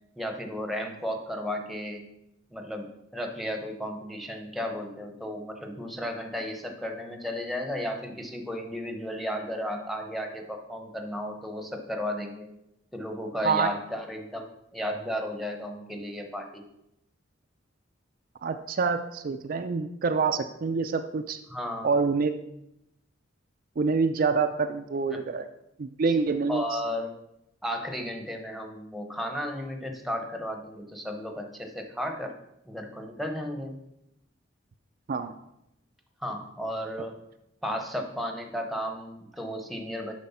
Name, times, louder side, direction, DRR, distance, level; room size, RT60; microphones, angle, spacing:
voice 1, 0.2-2.1 2.5-12.5 12.9-16.6 21.5-21.9 25.1-25.2 26.5-27.1 27.6-32.3 32.7-33.8 36.2-37.1 37.6-40.1, equal, ahead, 4 dB, 0.9 m, -34 dB
voice 2, 18.4-21.4 21.8-22.4 23.8-25.5 25.8-26.6 35.1-35.3, right 4 dB, 45° right, 7 dB, 0.4 m, -26 dB
7.4 x 5.1 x 5.6 m, 0.83 s
head